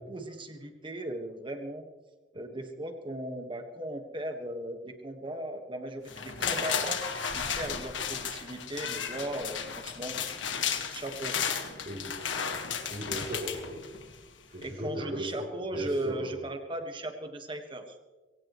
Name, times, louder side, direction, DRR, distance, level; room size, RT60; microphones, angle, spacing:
voice 1, 0.1-1.8 2.3-7.0 7.3-10.2 10.9-11.4 14.5-18.0, right 1 dB, 25° right, 5 dB, 1.6 m, -37 dB
sound 1, 6.1-14.2 14.6-14.7, left 7 dB, 90° left, 1.7 m, -34 dB
voice 2, 11.8-12.5 12.9-13.9 14.5-16.4, equal, 50° right, -5 dB, 3.5 m, -37 dB
22.0 x 17.5 x 3.2 m, 1.3 s
head